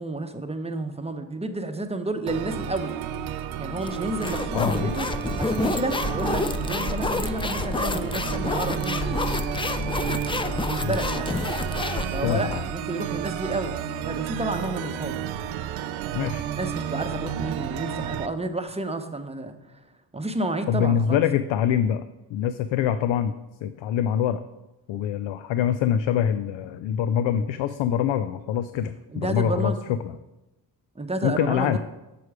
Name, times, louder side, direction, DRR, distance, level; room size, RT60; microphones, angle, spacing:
voice 1, 0.0-3.0 3.6-5.1 5.4-9.2 10.6-11.4 12.1-13.8 14.0-15.3 16.6-19.5 20.1-21.2 29.1-29.8 31.0-31.8, right 2 dB, 15° right, 7 dB, 0.8 m, -30 dB
sound 1, 2.3-18.3, right 10 dB, 90° right, 0.6 m, -32 dB
sound 2, 3.8-12.6, left 3 dB, 10° left, 0.4 m, -29 dB
voice 2, 4.5-4.9 10.8-11.0 12.2-12.6 16.1-16.5 20.7-22.0 22.3-23.4 23.6-24.4 24.9-30.1 31.2-31.8, left 9 dB, 75° left, 12 dB, 0.5 m, -24 dB
6.8 x 6.2 x 4.8 m, 0.99 s
supercardioid pair, 60°, 45 cm